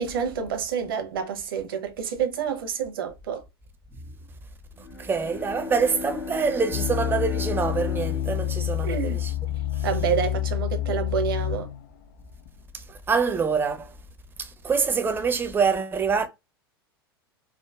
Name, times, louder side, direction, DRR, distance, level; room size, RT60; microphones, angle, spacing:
voice 1, 0.0-3.4 8.8-9.2 9.8-11.7, right 7 dB, 65° right, 0.9 m, -28 dB
Bowed string instrument, 4.7-9.5, left 5 dB, 80° left, 1.3 m, -36 dB
voice 2, 5.0-9.3 9.8-9.9 12.7-13.9 14.4-16.3, right 5 dB, 15° right, 0.6 m, -25 dB
sound 1, 6.7-11.8 12.5-12.6, left 13 dB, 50° left, 0.4 m, -28 dB
4.6 x 2.2 x 2.3 m
figure-of-eight pair, 90°, 13 cm